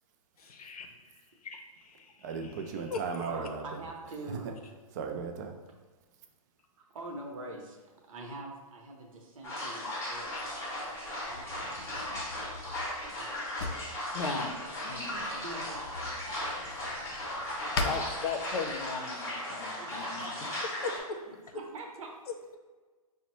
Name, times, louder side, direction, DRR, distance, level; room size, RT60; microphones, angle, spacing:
voice 1, 0.4-0.9 1.4-2.5 2.9-3.3 10.3-10.4 14.1-14.5 14.8-15.3 17.8-20.3 20.6-21.2, left 4 dB, 80° left, 4 dB, 0.6 m, -38 dB
voice 2, 2.2-3.8 4.3-4.5 4.9-5.6, right 5 dB, 30° right, 5 dB, 0.3 m, -36 dB
voice 3, 3.2-4.5 6.8-12.9 13.1-13.5 15.3-17.9 18.3-18.4 19.8-20.3 21.3-22.1, right 2 dB, 65° right, 1 dB, 0.8 m, -46 dB
sound 1, 9.4-21.0, left 1 dB, 15° left, 0.7 m, -37 dB
Drawer open or close, 10.1-18.9, left 3 dB, 45° left, 0.4 m, -41 dB
5.2 x 2.1 x 3.0 m, 1.3 s
hypercardioid pair, 150°, 19 cm